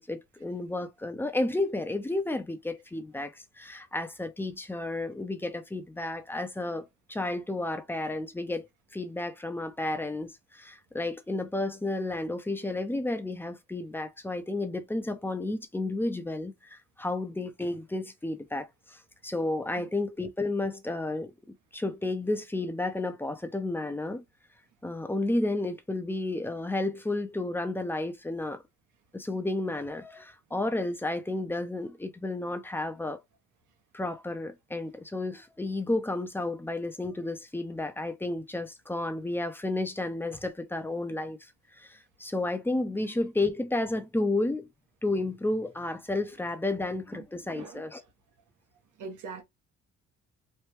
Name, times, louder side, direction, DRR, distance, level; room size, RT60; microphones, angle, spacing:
voice 1, 0.0-8.7 8.9-24.2 24.8-28.6 29.1-33.2 33.9-41.4 41.8-44.7 45.0-48.0, left 2 dB, 5° left, 0.5 m, -32 dB
voice 2, 47.5-47.9 49.0-49.4, right 5 dB, 80° right, 1.1 m, -41 dB
3.3 x 2.2 x 2.9 m
cardioid pair, 90°, 30 cm